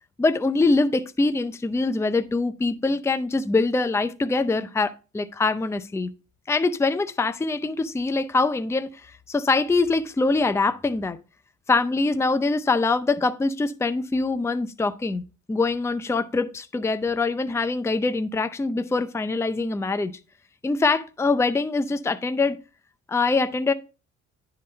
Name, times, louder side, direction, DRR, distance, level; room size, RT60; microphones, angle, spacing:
voice 1, 0.2-6.1 6.5-11.2 11.7-15.2 15.5-20.1 20.6-22.6 23.1-23.7, left 3 dB, 10° left, 0.5 m, -24 dB
10.5 x 3.9 x 4.2 m
cardioid pair, 90°, 30 cm